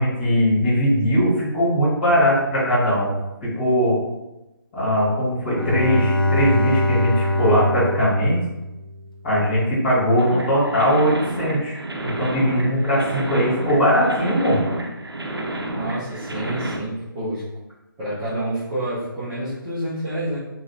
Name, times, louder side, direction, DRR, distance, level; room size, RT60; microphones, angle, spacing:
voice 1, 0.0-3.1 3.4-4.0 4.7-8.4 9.2-14.6, equal, 25° left, -10 dB, 1.4 m, -20 dB
Bowed string instrument, 5.4-9.2, left 1 dB, 70° left, 0.7 m, -23 dB
sound 1, 10.2-16.8, right 1 dB, 80° right, 0.5 m, -30 dB
voice 2, 15.7-17.4 18.0-20.4, right 1 dB, 10° right, -13 dB, 0.5 m, -28 dB
2.8 x 2.8 x 2.6 m, 0.98 s
figure-of-eight pair, 145°, 12 cm